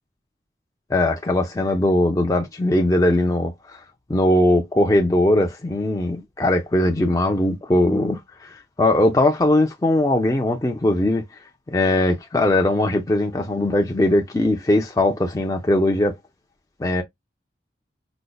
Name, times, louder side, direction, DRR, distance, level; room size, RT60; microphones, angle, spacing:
voice 1, 0.9-3.8 4.1-11.2 11.7-16.2 16.8-17.0, left 1 dB, 20° left, 0.4 m, -20 dB
5.1 x 2.1 x 2.2 m
head